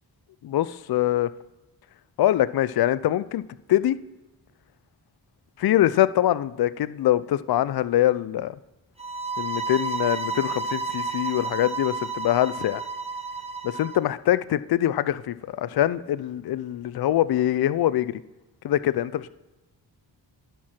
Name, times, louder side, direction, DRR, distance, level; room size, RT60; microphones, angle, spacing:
voice 1, 0.4-1.3 2.2-4.0 5.6-8.5 9.4-12.8 13.6-18.2 18.6-19.3, left 13 dB, 55° left, 16 dB, 0.5 m, -23 dB
sound 1, 9.0-14.0, right 4 dB, 15° right, 1.2 m, -31 dB
11.0 x 4.6 x 5.8 m, 1.1 s
cardioid pair, 50°, 46 cm